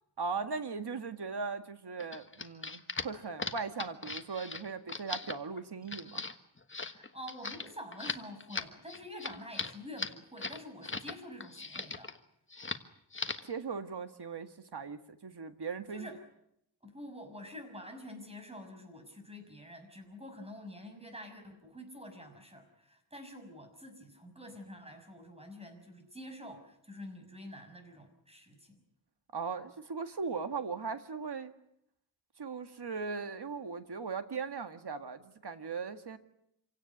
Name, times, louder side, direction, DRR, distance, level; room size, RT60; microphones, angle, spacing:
voice 1, 0.2-6.2 13.4-16.1 29.3-31.5 32.4-36.2, right 5 dB, 55° right, 8 dB, 2.0 m, -38 dB
sound 1, 2.0-11.1 11.4-12.2 12.5-12.8 13.1-13.5, left 3 dB, 25° left, 1.4 m, -39 dB
voice 2, 6.8-12.1 15.9-16.2 16.8-28.8, left 1 dB, 15° right, 5 dB, 6.3 m, -47 dB
27.0 x 17.0 x 9.7 m, 0.77 s
wide cardioid pair, 95°, 46 cm